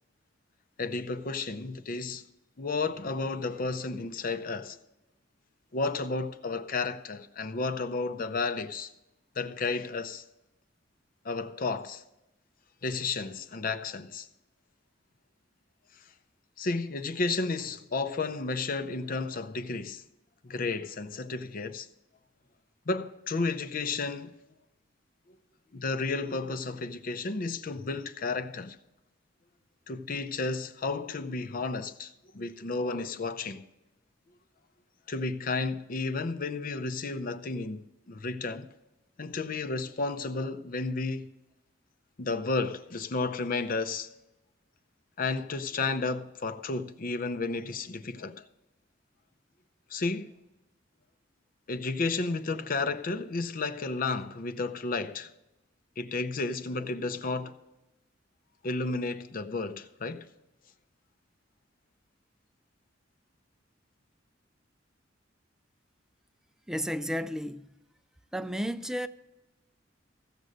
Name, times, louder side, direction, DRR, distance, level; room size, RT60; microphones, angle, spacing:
voice 1, 0.8-2.2 2.6-4.8 5.7-8.9 9.4-10.2 11.2-12.0 12.8-14.3 16.6-20.0 20.4-21.9 22.9-24.3 25.7-28.8 29.9-33.6 35.1-38.7 39.2-41.3 42.2-44.1 45.2-48.4 49.9-50.3 51.7-55.3 56.0-57.5 58.6-60.3, left 3 dB, 50° left, 0.6 m, -32 dB
voice 2, 66.7-67.7 68.3-69.1, equal, 5° right, 0.3 m, -32 dB
15.5 x 6.6 x 6.3 m
head